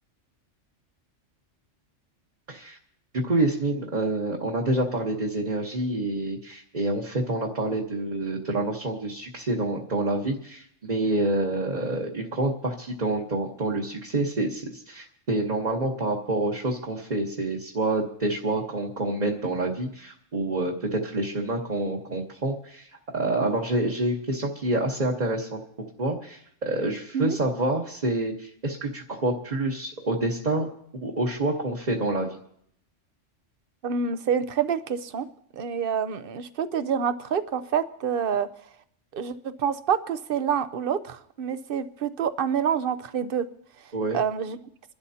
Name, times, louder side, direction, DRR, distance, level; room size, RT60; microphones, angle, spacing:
voice 1, 2.5-2.8 3.1-30.7 31.0-32.4 43.9-44.2, right 2 dB, 35° right, -2 dB, 1.3 m, -27 dB
voice 2, 33.8-35.3 35.5-38.5 39.1-43.4 44.1-44.6, right 7 dB, 55° right, 13 dB, 0.8 m, -27 dB
27.5 x 12.0 x 2.8 m, 0.69 s
omnidirectional pair, 1.3 m